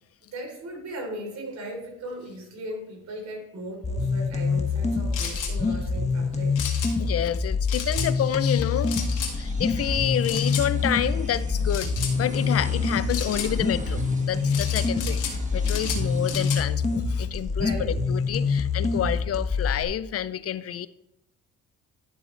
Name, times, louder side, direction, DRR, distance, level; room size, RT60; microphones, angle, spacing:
voice 1, 0.3-6.6 17.5-17.9 18.4-18.6 18.8-18.9, right 1 dB, 65° right, 1 dB, 3.7 m, -37 dB
sound 1, 3.8-19.8, left 4 dB, 20° left, 1.3 m, -26 dB
sound 2, 5.1-5.5 6.6-6.9 7.7-8.1 8.9-9.3 10.2-10.7 11.7-12.1 13.1-13.5 14.5-15.4 15.6-16.6, left 7 dB, 85° left, 2.3 m, -33 dB
voice 2, 7.0-9.0 9.3-15.2 15.5-20.9, left 10 dB, 50° left, 15 dB, 0.5 m, -29 dB
sound 3, 7.7-17.4, right 2 dB, 25° right, 1.8 m, -42 dB
12.0 x 7.1 x 3.3 m, 0.86 s
cardioid pair, 90°, 30 cm